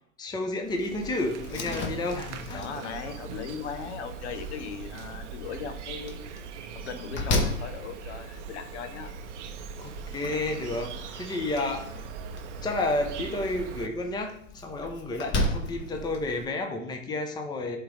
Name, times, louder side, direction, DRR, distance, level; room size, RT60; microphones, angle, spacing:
voice 1, 0.2-2.6 9.8-11.9 12.6-17.8, left 2 dB, 10° left, 4 dB, 0.8 m, -31 dB
Insect, 0.6-13.9, right 6 dB, 60° right, 0.9 m, -41 dB
Slam, 1.4-16.4, left 1 dB, 30° left, 1.2 m, -36 dB
voice 2, 2.5-6.2 6.7-9.1 11.8-12.0 16.0-16.1, left 7 dB, 55° left, 9 dB, 1.0 m, -38 dB
11.0 x 3.8 x 3.3 m, 0.74 s
hypercardioid pair, 105°, 39 cm